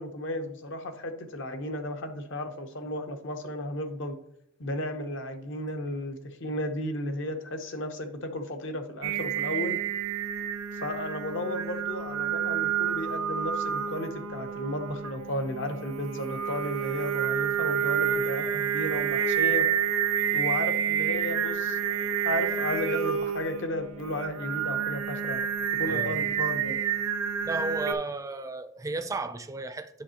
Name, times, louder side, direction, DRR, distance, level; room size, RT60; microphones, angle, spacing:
voice 1, 0.0-4.1 4.6-9.8 10.7-19.7 20.3-25.5 25.8-26.8, left 1 dB, 60° left, 0.8 m, -34 dB
Singing, 9.0-27.9, right 8 dB, 85° right, 0.5 m, -29 dB
voice 2, 25.9-26.2 27.4-30.0, right 3 dB, 15° right, 0.4 m, -34 dB
8.0 x 5.5 x 2.9 m
head